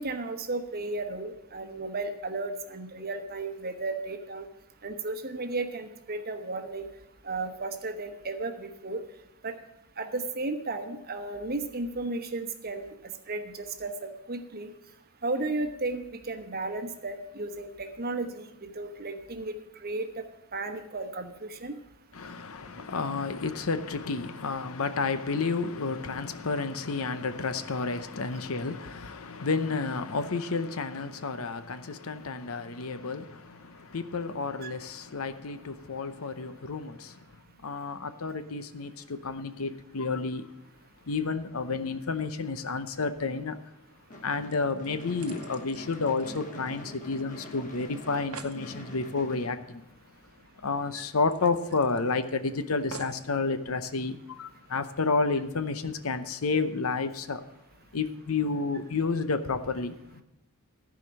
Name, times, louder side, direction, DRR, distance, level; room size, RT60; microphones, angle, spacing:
voice 1, 0.0-4.5 4.8-6.9 7.2-9.0 9.4-9.6 10.0-14.7 15.2-19.5 19.8-20.2 20.5-21.8 34.6-34.7 50.9-51.0, right 3 dB, 45° right, 1.1 m, -34 dB
voice 2, 22.1-37.2 37.6-40.5 41.1-43.6 44.2-49.8 50.6-57.4 57.9-60.2, left 4 dB, 70° left, 0.8 m, -31 dB
Gunshot gunfire / Fireworks, 44.1-50.4, left 1 dB, 35° left, 1.4 m, -45 dB
sound 1, 44.5-47.1 47.4-47.5 47.8-47.9 48.1-48.6 50.1-50.2 50.6-50.7 51.3-52.3 52.9-53.3 54.0-54.1, right 5 dB, 85° right, 0.9 m, -47 dB
14.5 x 4.9 x 7.3 m
head